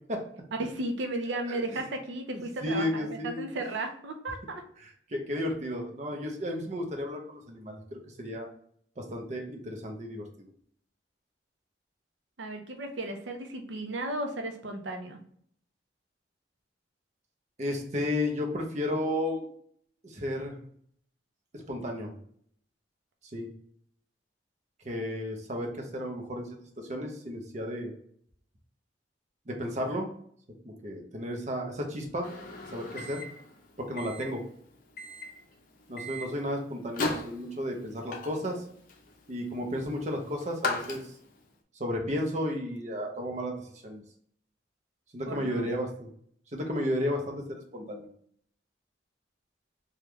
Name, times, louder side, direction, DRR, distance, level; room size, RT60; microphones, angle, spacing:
voice 1, 0.6-4.6 12.4-15.2 45.3-45.7, right 2 dB, 85° right, 5 dB, 0.6 m, -35 dB
voice 2, 1.5-1.8 2.3-3.5 4.8-8.5 9.0-10.5 17.6-19.5 20.0-20.6 21.5-22.1 23.3-23.5 24.8-26.5 26.8-27.9 29.5-30.1 30.6-32.3 32.7-33.2 33.8-34.4 35.9-38.6 39.3-41.0 41.8-44.0 45.1-46.1 46.5-48.1, left 1 dB, 40° right, 2 dB, 0.7 m, -33 dB
Microwave oven, 32.2-41.5, left 2 dB, 50° left, 0.5 m, -38 dB
3.4 x 2.3 x 3.1 m, 0.62 s
head